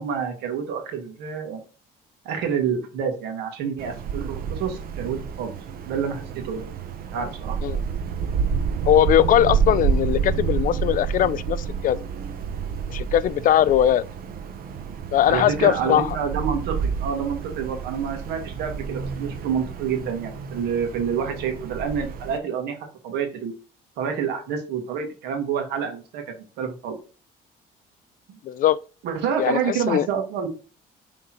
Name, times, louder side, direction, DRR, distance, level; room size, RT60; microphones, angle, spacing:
voice 1, 0.0-1.6 2.3-5.5 5.9-6.7 7.1-7.6 15.3-22.8 23.0-23.5 24.0-26.2 26.6-27.0 28.3-28.4 29.0-30.5, right 7 dB, 85° right, 1.9 m, -28 dB
Wind, 3.8-22.4, right 6 dB, 60° right, 0.9 m, -29 dB
voice 2, 8.9-12.0 12.9-14.0 15.1-16.2 21.2-21.4 28.4-28.8 29.4-30.1, left 11 dB, 55° left, 0.4 m, -20 dB
6.4 x 3.7 x 4.4 m
cardioid pair, 110°, 17 cm